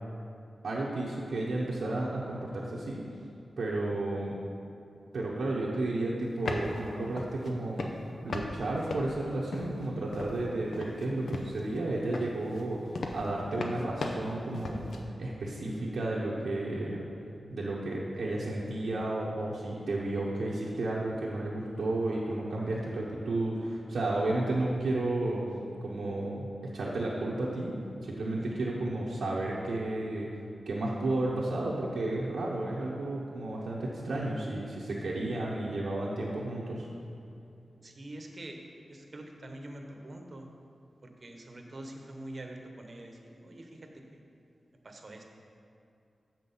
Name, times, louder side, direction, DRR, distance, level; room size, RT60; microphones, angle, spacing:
voice 1, 0.6-3.0 3.6-4.3 5.1-7.9 8.2-12.8 13.1-14.9 15.2-17.0 17.5-25.4 25.8-27.7 28.0-30.3 30.7-36.9, right 2 dB, 90° right, -6 dB, 1.0 m, -32 dB
sound 1, 6.2-6.8 7.2-7.5 7.8-8.5 8.8-9.9 10.1-10.4 10.7-11.8 12.1-15.0, left 2 dB, 90° left, 0.7 m, -37 dB
voice 2, 37.8-38.6 38.9-40.5 41.0-44.2 44.8-45.2, right 1 dB, 40° right, 3 dB, 0.9 m, -45 dB
7.3 x 6.0 x 5.5 m, 2.6 s
wide cardioid pair, 130°, 0 cm